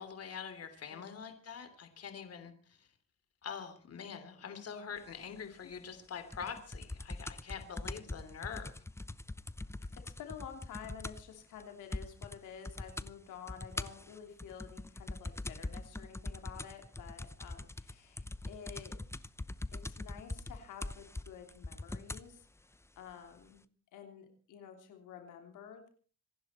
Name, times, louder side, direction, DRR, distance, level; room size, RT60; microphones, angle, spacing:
voice 1, 0.0-2.9 3.4-8.7, left 7 dB, 55° left, 9 dB, 3.1 m, -45 dB
sound 1, 6.3-11.3 11.6-11.7 11.9-12.4 12.6-13.1 13.5-22.3 23.1-23.2, left 2 dB, 10° left, 0.8 m, -42 dB
voice 2, 10.0-19.0 19.7-22.5 23.0-23.6 23.9-25.9, left 8 dB, 85° left, 5 dB, 3.1 m, -50 dB
26.0 x 11.0 x 4.3 m, 0.41 s
cardioid pair, 90°, 30 cm